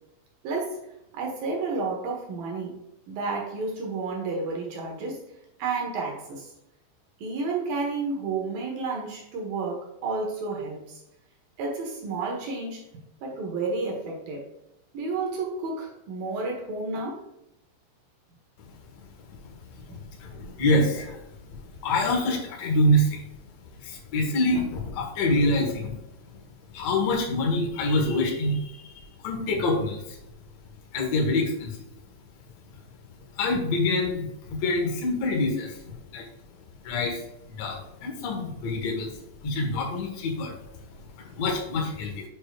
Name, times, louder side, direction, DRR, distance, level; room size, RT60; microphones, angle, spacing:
voice 1, 0.4-0.9 1.1-2.8 3.1-5.2 5.6-6.5 7.2-11.0 11.6-12.9 13.2-14.5 14.9-17.2, right 3 dB, 65° right, -1 dB, 2.5 m, -31 dB
voice 2, 19.9-21.2 21.8-23.2 23.8-25.9 26.7-28.9 29.2-30.2 30.9-31.7 33.4-36.2 36.8-37.2 37.5-39.1 39.4-40.5 41.2-42.2, left 1 dB, 75° left, -1 dB, 1.5 m, -26 dB
7.4 x 6.5 x 2.4 m, 0.87 s
omnidirectional pair, 5.6 m